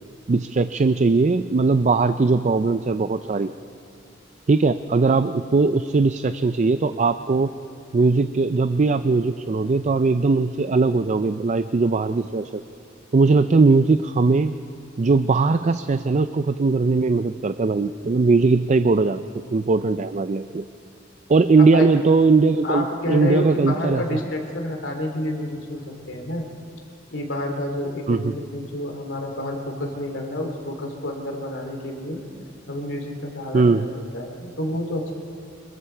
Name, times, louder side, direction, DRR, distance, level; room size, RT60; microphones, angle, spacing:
voice 1, 0.3-3.5 4.5-7.5 7.9-12.6 13.1-14.5 15.0-19.2 19.5-20.6 21.3-24.2 28.1-28.3 33.5-33.9, right 3 dB, 40° right, 11 dB, 0.4 m, -19 dB
voice 2, 22.6-26.4 27.1-32.2 32.7-35.1, left 1 dB, 75° left, 3 dB, 2.9 m, -29 dB
25.5 x 23.0 x 4.5 m, 2.5 s
head